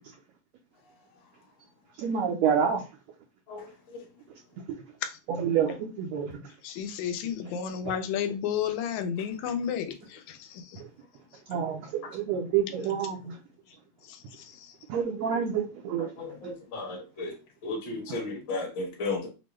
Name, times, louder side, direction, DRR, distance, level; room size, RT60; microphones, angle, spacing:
voice 1, 2.0-2.8 5.4-6.5 11.5-13.4 14.9-16.1, right 7 dB, 75° right, 1.6 m, -28 dB
voice 2, 3.5-4.0 16.0-17.3 17.6-19.3, left 3 dB, 50° left, 1.5 m, -35 dB
voice 3, 6.6-10.8 11.3-11.4 14.0-14.8, left 8 dB, 75° left, 1.9 m, -32 dB
6.0 x 2.2 x 3.1 m
omnidirectional pair, 3.5 m